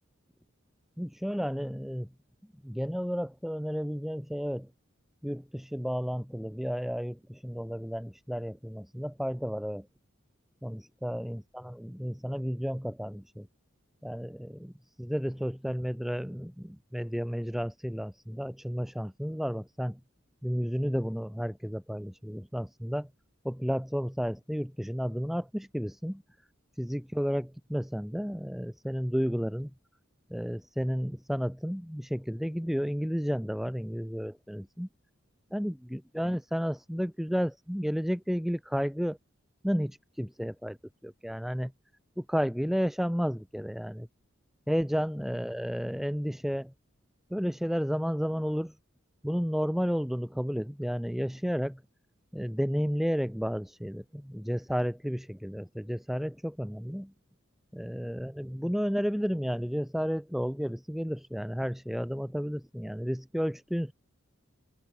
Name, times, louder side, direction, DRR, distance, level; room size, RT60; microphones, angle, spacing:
voice 1, 1.0-2.1 2.6-4.7 5.2-9.9 10.6-13.5 14.0-14.7 15.0-20.0 20.4-23.1 23.4-26.2 26.8-29.7 30.3-34.9 35.5-39.2 39.6-40.8 41.0-41.7 42.2-44.1 44.7-46.7 47.3-48.7 49.2-51.8 52.3-57.1 57.7-63.9, equal, ahead, 1.3 m, -32 dB
open air
head